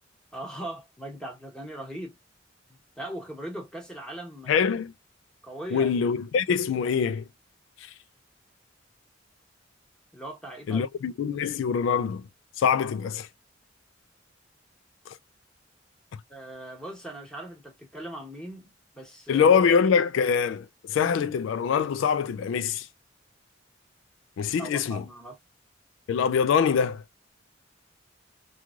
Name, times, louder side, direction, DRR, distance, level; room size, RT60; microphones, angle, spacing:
voice 1, 0.3-2.2 2.7-4.6 5.4-5.9 10.1-10.9 16.3-19.5 24.6-25.4, right 1 dB, 5° left, 1.2 m, -39 dB
voice 2, 4.5-4.9 5.7-7.2 7.8-7.9 10.7-12.2 12.6-13.3 15.1-15.2 19.3-22.9 24.4-25.0 26.1-27.0, left 6 dB, 75° left, 0.3 m, -24 dB
3.1 x 2.4 x 2.3 m
head